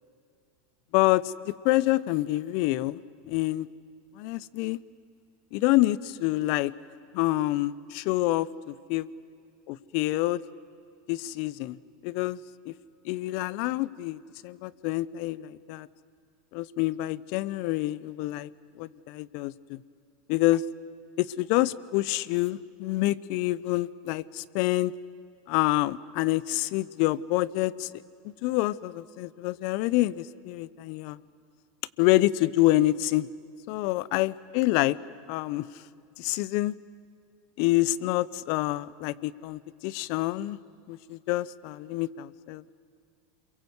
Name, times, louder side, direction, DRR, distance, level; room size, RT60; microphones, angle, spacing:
voice 1, 0.9-3.0 3.3-3.7 4.2-4.8 5.5-6.7 7.1-9.0 9.7-10.4 11.1-11.8 12.0-12.4 12.7-12.8 13.0-15.9 16.5-18.5 18.8-19.8 20.3-20.6 21.2-24.9 25.5-27.9 28.4-31.2 32.0-33.3 33.7-35.0 35.3-35.7 36.2-36.7 37.6-40.6 40.9-42.7, left 17 dB, 60° left, 20 dB, 0.7 m, -27 dB
28.0 x 22.5 x 8.1 m, 2.4 s
hypercardioid pair, 90°, 0 cm